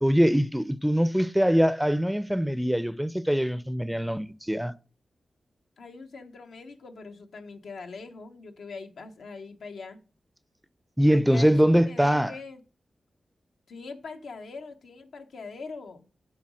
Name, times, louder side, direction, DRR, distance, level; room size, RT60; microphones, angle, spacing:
voice 1, 0.0-4.7 11.0-12.3, equal, 5° right, 0.4 m, -23 dB
voice 2, 5.8-10.0 11.1-12.6 13.7-16.1, left 4 dB, 90° left, 0.9 m, -42 dB
7.5 x 4.0 x 6.2 m
cardioid pair, 60°, 0 cm